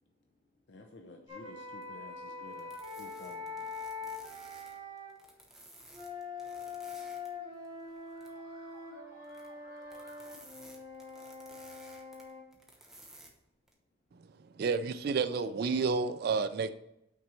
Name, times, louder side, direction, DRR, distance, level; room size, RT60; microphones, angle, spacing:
voice 1, 0.7-3.7 4.0-4.1, left 2 dB, 60° left, 0.6 m, -52 dB
sound 1, 1.3-5.1 5.9-12.4, left 4 dB, 30° right, 2.8 m, -44 dB
sound 2, 1.8-1.9 2.5-7.3 7.6-8.4 9.2-9.5 9.8-13.3 13.7-13.8, right 1 dB, ahead, 0.9 m, -55 dB
voice 2, 7.8-10.7, equal, 40° left, 2.2 m, -58 dB
voice 3, 14.6-16.7, right 4 dB, 50° right, 0.3 m, -30 dB
5.9 x 4.3 x 6.2 m
head